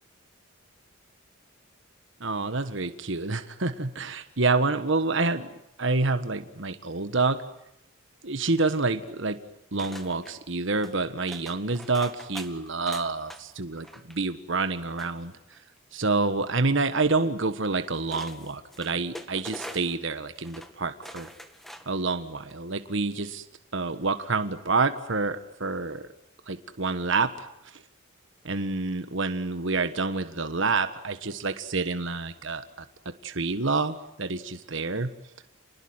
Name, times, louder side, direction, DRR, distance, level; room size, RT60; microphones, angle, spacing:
voice 1, 2.2-7.4 8.2-9.4 9.7-15.3 15.9-21.3 21.9-23.4 23.7-26.1 26.5-27.5 27.7-27.8 28.4-32.6 33.2-35.1, right 3 dB, 60° right, 10 dB, 1.4 m, -28 dB
sound 1, 8.5-9.2 9.8-10.3 10.8-11.0 11.3-13.4 13.7-14.2 15.0-15.8 17.2-17.3 18.1-20.0 20.4-20.7 21.0-22.0 22.4-22.5, equal, ahead, 2.0 m, -44 dB
28.5 x 20.5 x 9.6 m, 0.83 s
head